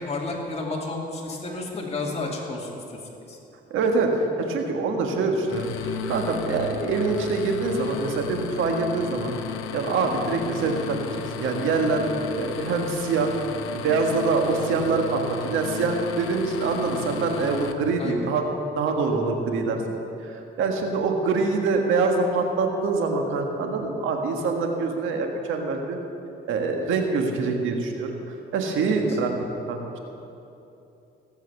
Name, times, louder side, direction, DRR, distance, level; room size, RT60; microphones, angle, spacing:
voice 1, 0.0-3.0 3.3-3.4 18.0-18.3 28.9-29.2, left 2 dB, 30° left, -2 dB, 2.4 m, -32 dB
voice 2, 3.7-9.3 9.7-11.0 11.4-12.0 12.3-13.3 13.7-18.4 18.8-19.8 20.2-26.0 26.5-28.1 28.5-29.3 29.7-30.0, right 4 dB, 85° right, 3 dB, 1.6 m, -25 dB
sound 1, 5.5-17.7, left 7 dB, 90° left, 0.8 m, -34 dB
17.5 x 7.6 x 7.1 m, 2.8 s
cardioid pair, 90°, 20 cm